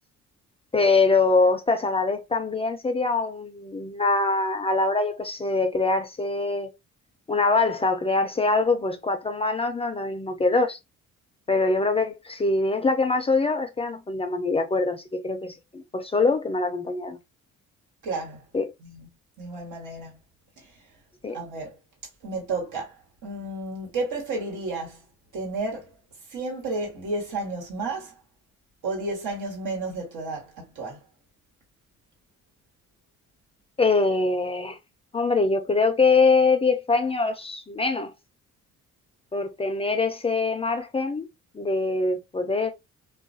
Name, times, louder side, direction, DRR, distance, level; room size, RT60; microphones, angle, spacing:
voice 1, 0.7-6.7 7.3-10.8 11.5-17.2 18.5-18.7 21.2-21.4 33.8-34.8 35.1-38.1 39.3-41.3 41.5-42.7, left 3 dB, 20° left, 0.4 m, -23 dB
voice 2, 18.0-18.4 18.8-19.1 19.4-20.2 21.3-21.7 22.2-22.9 23.2-25.0 25.3-25.8 26.3-28.1 28.8-31.0, right 3 dB, 80° right, 1.3 m, -32 dB
2.3 x 2.2 x 2.5 m
cardioid pair, 90°, 30 cm